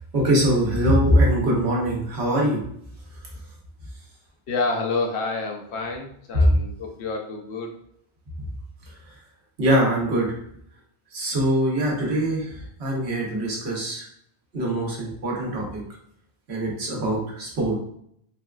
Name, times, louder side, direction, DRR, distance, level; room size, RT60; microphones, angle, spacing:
voice 1, 0.1-2.6 6.3-6.6 9.6-10.3 11.1-14.1 14.5-15.8 16.5-17.7, equal, 80° right, -2 dB, 1.2 m, -22 dB
voice 2, 4.5-7.7, left 3 dB, 85° left, 1 dB, 0.9 m, -28 dB
3.9 x 2.2 x 2.3 m, 0.69 s
omnidirectional pair, 1.1 m